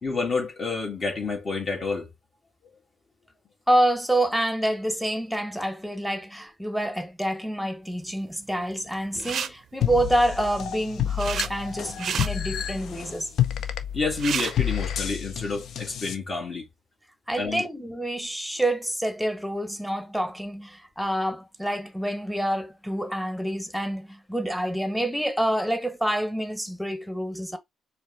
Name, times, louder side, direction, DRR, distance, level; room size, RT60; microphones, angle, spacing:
voice 1, 0.0-2.1 9.1-9.3 13.9-16.7 17.4-17.7, left 4 dB, 40° left, 1.8 m, -29 dB
voice 2, 3.7-13.3 17.3-27.6, right 1 dB, ahead, 1.0 m, -27 dB
sound 1, 9.1-9.5 10.7-11.5 11.9-12.3 13.8-13.9 14.1-14.5, right 8 dB, 60° right, 0.5 m, -30 dB
sound 2, 9.8-16.2, left 10 dB, 65° left, 0.6 m, -29 dB
4.5 x 2.2 x 4.1 m
cardioid pair, 95°, 0 cm